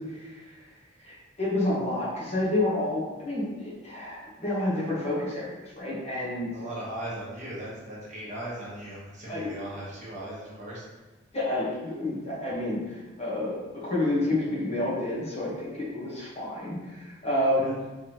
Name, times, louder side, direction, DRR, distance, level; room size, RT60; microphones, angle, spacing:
voice 1, 0.1-0.5 1.0-6.5 9.3-9.5 11.3-17.7, left 1 dB, 35° left, -7 dB, 1.3 m, -29 dB
voice 2, 6.5-10.9 17.5-17.7, right 1 dB, 40° right, -7 dB, 1.1 m, -38 dB
3.5 x 3.4 x 3.0 m, 1.1 s
head